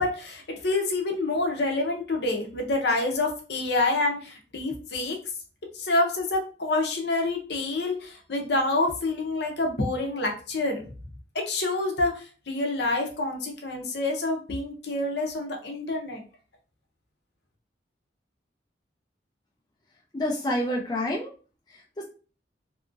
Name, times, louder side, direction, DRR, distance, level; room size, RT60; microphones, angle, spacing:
voice 1, 0.0-5.2 5.7-10.8 11.3-16.2, left 2 dB, 65° left, 2 dB, 0.7 m, -27 dB
voice 2, 20.1-21.3 21.7-22.0, left 1 dB, 20° left, -2 dB, 0.4 m, -28 dB
2.8 x 2.5 x 2.5 m, 0.37 s
head